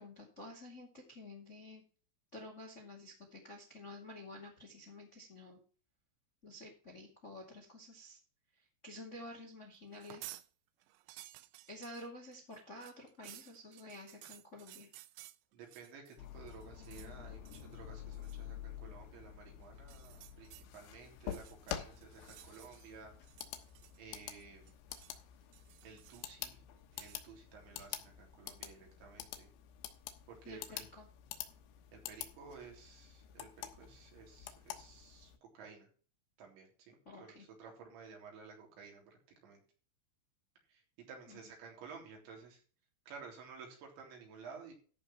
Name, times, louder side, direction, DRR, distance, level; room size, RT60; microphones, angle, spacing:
voice 1, 0.0-1.8 2.3-5.6 6.4-8.2 8.8-10.4 11.7-14.9 30.4-31.1 37.0-37.4 41.3-41.4, left 1 dB, 25° left, 1 dB, 1.5 m, -50 dB
sound 1, 9.9-10.5 10.8-16.2 16.5-17.1 17.5-17.8 18.1-18.4 19.8-20.7 21.2-22.9 23.2-24.2 24.4-25.2 25.5-26.4 26.9-27.3, right 17 dB, 85° right, 3.3 m, -55 dB
voice 2, 15.5-23.1 24.0-24.7 25.8-26.6 26.9-29.5 30.3-30.9 31.9-35.9 36.4-39.6 40.7-42.6 43.1-44.7, right 5 dB, 65° right, 0 dB, 5.6 m, -54 dB
sound 2, 16.2-35.4, left 11 dB, 85° left, 3.8 m, -48 dB
14.0 x 5.5 x 5.8 m, 0.40 s
omnidirectional pair, 5.8 m